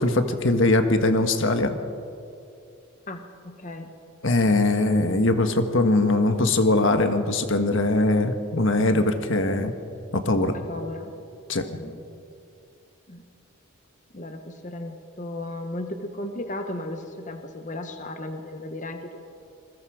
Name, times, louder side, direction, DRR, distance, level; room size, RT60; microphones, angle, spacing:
voice 1, 0.0-1.8 4.2-9.7 10.1-10.5 11.5-11.6, left 2 dB, 60° left, 7 dB, 1.5 m, -21 dB
voice 2, 3.1-4.0 10.5-11.1 11.7-12.0 13.1-13.2 14.1-19.2, left 1 dB, 35° left, 6 dB, 1.3 m, -35 dB
27.5 x 21.5 x 5.0 m, 2.5 s
head